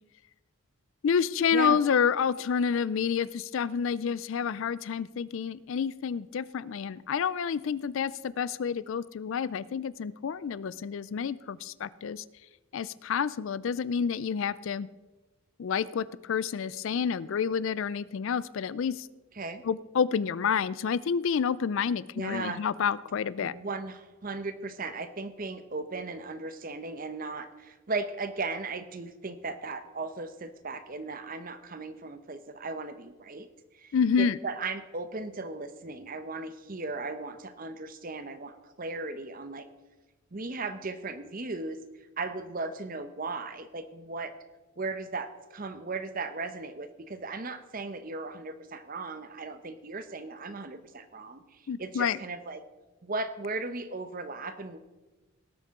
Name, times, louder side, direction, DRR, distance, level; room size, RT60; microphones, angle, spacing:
voice 1, 1.0-12.2 12.7-14.9 15.6-19.1 19.6-23.5 33.9-34.4 51.7-52.2, left 6 dB, 60° left, 19 dB, 0.3 m, -29 dB
voice 2, 22.2-22.6 23.4-33.5 33.7-39.7 40.3-41.8 42.2-44.3 44.8-52.6 53.0-54.8, right 3 dB, 40° right, 11 dB, 0.8 m, -37 dB
18.5 x 8.4 x 3.7 m, 1.1 s
head